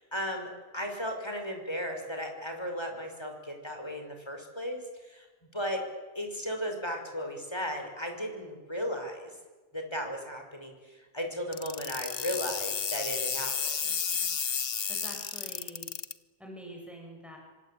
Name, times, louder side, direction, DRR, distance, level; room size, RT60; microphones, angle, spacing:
voice 1, 0.0-5.3 5.5-5.8 6.1-9.3 9.7-13.9, equal, 25° left, 4 dB, 5.9 m, -36 dB
sound 1, 11.5-16.1, left 6 dB, 65° left, 1.3 m, -32 dB
voice 2, 14.9-15.9 16.4-17.4, right 1 dB, ahead, 0 dB, 7.3 m, -46 dB
27.0 x 25.5 x 8.7 m, 1.3 s
omnidirectional pair, 1.1 m